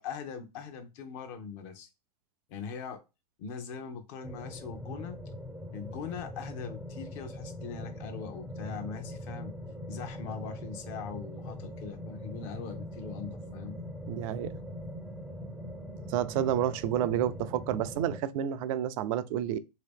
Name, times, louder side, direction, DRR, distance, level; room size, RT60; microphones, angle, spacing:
voice 1, 0.0-1.9 2.5-3.0 3.4-5.2 5.7-9.5 9.9-13.8, left 6 dB, 50° left, 0.8 m, -41 dB
sound 1, 4.2-18.2, left 1 dB, ahead, 0.5 m, -42 dB
voice 2, 14.1-14.6 16.1-19.6, right 11 dB, 55° right, 0.4 m, -30 dB
3.0 x 2.8 x 3.5 m
hypercardioid pair, 115°, 21 cm